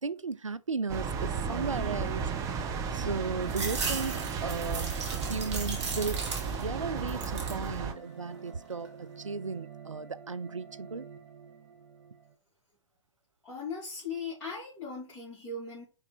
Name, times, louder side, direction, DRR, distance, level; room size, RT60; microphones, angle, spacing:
voice 1, 0.0-11.1, right 4 dB, 85° right, 0.4 m, -36 dB
sound 1, 0.9-7.9, right 5 dB, 20° right, 1.0 m, -34 dB
sound 2, 2.1-12.4, right 8 dB, 45° right, 1.0 m, -47 dB
sound 3, 3.5-6.8 7.1-7.7 8.1-8.9, right 4 dB, 65° right, 2.3 m, -37 dB
voice 2, 13.4-15.9, left 4 dB, 10° left, 3.3 m, -38 dB
5.4 x 4.5 x 4.2 m
figure-of-eight pair, 115°, 16 cm